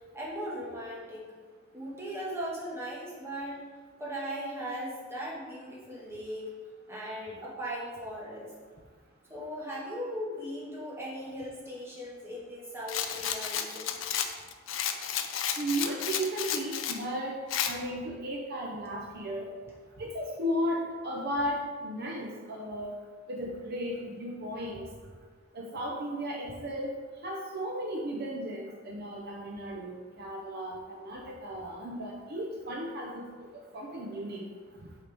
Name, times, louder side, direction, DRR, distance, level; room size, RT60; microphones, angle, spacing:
voice 1, 0.1-1.3 1.7-3.6 4.0-6.5 6.9-8.5 9.3-14.1, equal, 15° right, -6 dB, 1.7 m, -38 dB
Rattle, 12.9-17.0 17.5-17.7, left 9 dB, 70° left, 0.5 m, -32 dB
voice 2, 15.6-17.4 17.6-19.5 20.0-23.0 23.3-24.9 25.5-26.9 27.2-34.5, equal, 50° right, -1 dB, 0.7 m, -35 dB
8.1 x 4.5 x 3.5 m, 1.5 s
head